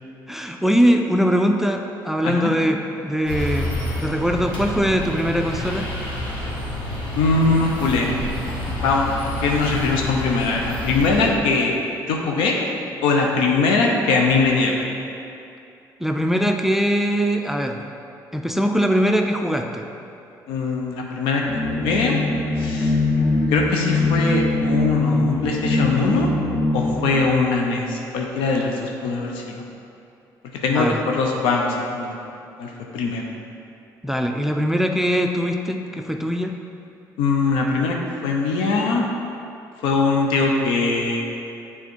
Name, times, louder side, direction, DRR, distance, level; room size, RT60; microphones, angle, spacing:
voice 1, 0.3-3.7 4.0-5.9 16.0-17.9 18.3-19.9 30.7-31.0 34.0-36.5, equal, 5° right, 4 dB, 0.4 m, -21 dB
sound 1, 3.3-11.3, left 1 dB, 65° left, 1.4 m, -29 dB
voice 2, 7.1-8.1 8.8-9.1 9.4-11.7 12.1-12.6 13.0-14.8 20.5-21.4 21.7-22.2 22.6-23.0 23.5-26.3 26.7-29.6 30.6-32.1 32.6-33.2 37.2-38.0 38.2-39.1 39.8-41.2, left 3 dB, 80° left, 0 dB, 0.6 m, -21 dB
sound 2, 21.5-27.1, left 2 dB, 45° left, 1.0 m, -22 dB
6.9 x 3.6 x 4.5 m, 2.6 s
supercardioid pair, 65°, 9 cm